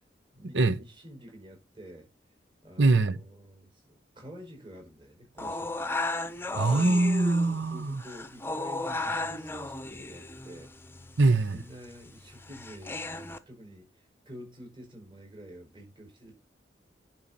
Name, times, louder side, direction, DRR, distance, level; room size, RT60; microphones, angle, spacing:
voice 1, 0.3-2.1 2.6-5.8 7.7-10.7 11.5-16.3, equal, 25° right, 5.2 m, -48 dB
voice 2, 2.8-3.2 6.5-8.0 11.2-11.6, right 3 dB, 85° right, 1.0 m, -23 dB
sound 1, 5.4-13.4, left 2 dB, 10° left, 0.8 m, -35 dB
10.5 x 5.7 x 4.1 m
head